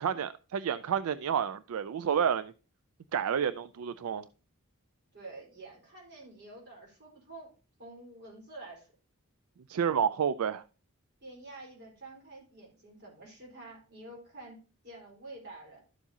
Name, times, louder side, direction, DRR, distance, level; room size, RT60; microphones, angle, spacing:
voice 1, 0.0-2.5 3.1-4.3 9.7-10.6, right 8 dB, 75° right, 0.4 m, -30 dB
voice 2, 5.1-7.5 7.8-8.9 11.2-14.6 14.8-15.8, right 2 dB, 50° right, 4.4 m, -48 dB
12.0 x 7.2 x 2.8 m
head